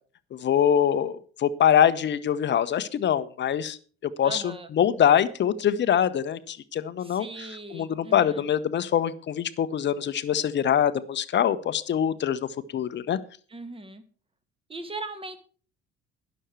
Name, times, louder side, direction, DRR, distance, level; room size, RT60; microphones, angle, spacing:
voice 1, 0.3-3.8 4.2-7.3 7.7-13.2, left 9 dB, 35° left, 15 dB, 1.0 m, -24 dB
voice 2, 4.2-4.7 7.0-8.5 13.5-14.0 14.7-15.4, right 2 dB, 15° right, 11 dB, 1.9 m, -39 dB
12.0 x 11.0 x 4.6 m, 0.40 s
figure-of-eight pair, 60°, 33 cm